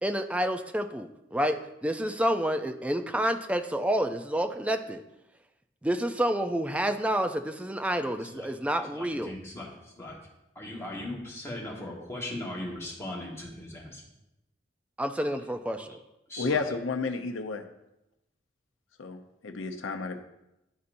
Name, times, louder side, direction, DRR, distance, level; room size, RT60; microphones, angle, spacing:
voice 1, 0.0-5.0 5.8-9.4 15.0-16.0, equal, 5° right, 7 dB, 0.4 m, -29 dB
voice 2, 8.7-10.2 10.5-14.0 15.3-15.9 16.3-16.6, left 1 dB, 15° left, -4 dB, 1.5 m, -39 dB
voice 3, 16.4-17.6 19.0-20.2, left 4 dB, 85° left, 5 dB, 0.7 m, -31 dB
11.5 x 4.0 x 2.6 m, 0.90 s
head